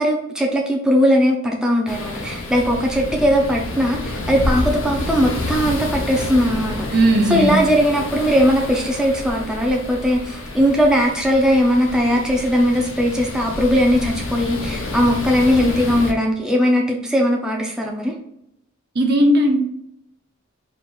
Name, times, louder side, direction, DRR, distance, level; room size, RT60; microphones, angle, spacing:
voice 1, 0.0-6.9 7.3-18.1, equal, 5° right, -1 dB, 0.6 m, -19 dB
sound 1, 1.9-16.1, left 2 dB, 80° left, 0.9 m, -29 dB
voice 2, 6.9-7.6 18.9-19.6, right 1 dB, 55° right, 3 dB, 0.7 m, -16 dB
4.6 x 2.5 x 3.7 m, 0.77 s
head